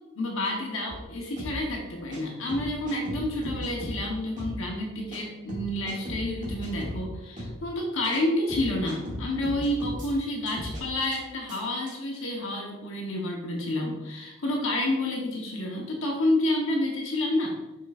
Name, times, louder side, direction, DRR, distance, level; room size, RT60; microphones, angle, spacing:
voice 1, 0.2-17.6, left 1 dB, 70° left, 0 dB, 1.0 m, -29 dB
sound 1, 0.9-1.0 1.4-1.6 2.1-2.2 2.5-4.0 4.4-4.6 5.1-5.2 5.5-7.0 7.4-7.6 8.1-8.2 8.5-10.1 10.5-10.8 11.1-11.2 11.5-11.6 11.9-12.0, equal, 35° right, 2.1 m, -36 dB
7.4 x 6.1 x 2.4 m, 1.1 s
head